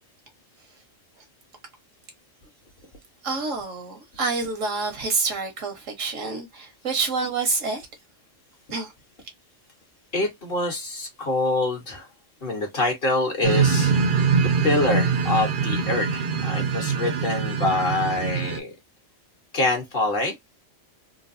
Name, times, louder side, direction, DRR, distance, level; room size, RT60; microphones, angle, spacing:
voice 1, 3.2-7.9 8.7-8.9, right 4 dB, 80° right, 1.5 m, -27 dB
voice 2, 10.1-12.1 12.4-13.9 14.4-18.7 19.5-20.3, left 2 dB, 45° left, 1.5 m, -25 dB
sound 1, 13.4-18.6, right 5 dB, 50° right, 0.7 m, -23 dB
3.8 x 2.3 x 2.6 m
omnidirectional pair, 1.3 m